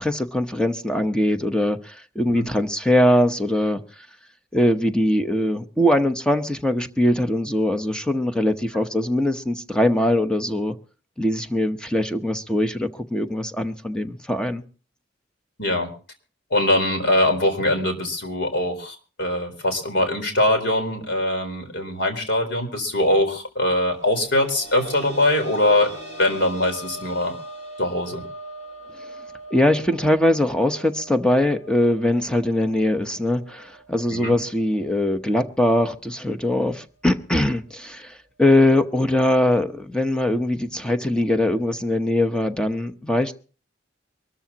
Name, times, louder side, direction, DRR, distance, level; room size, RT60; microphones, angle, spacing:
voice 1, 0.0-3.8 4.5-10.8 11.2-14.6 29.5-43.4, left 1 dB, 5° left, 1.0 m, -21 dB
voice 2, 15.6-15.9 16.5-25.9 26.2-27.3 27.8-28.2 34.1-34.3, left 1 dB, 65° left, 4.2 m, -22 dB
sound 1, 24.0-35.5 35.8-35.9 37.5-37.6, right 1 dB, 40° left, 5.5 m, -41 dB
24.0 x 13.5 x 2.9 m
head